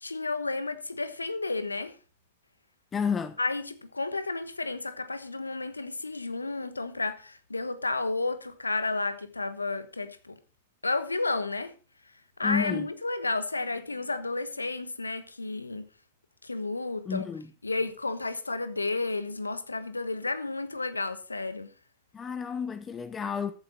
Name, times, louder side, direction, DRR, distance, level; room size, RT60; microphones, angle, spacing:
voice 1, 0.0-1.9 3.4-10.4 10.8-11.7 12.4-15.9 16.4-17.3 17.6-21.7, left 3 dB, 85° left, 1.2 m, -32 dB
voice 2, 2.9-3.4 12.4-12.9 17.0-17.5 22.1-23.5, left 6 dB, 25° left, 1.2 m, -31 dB
14.0 x 9.2 x 4.6 m
figure-of-eight pair, 90°, 0 cm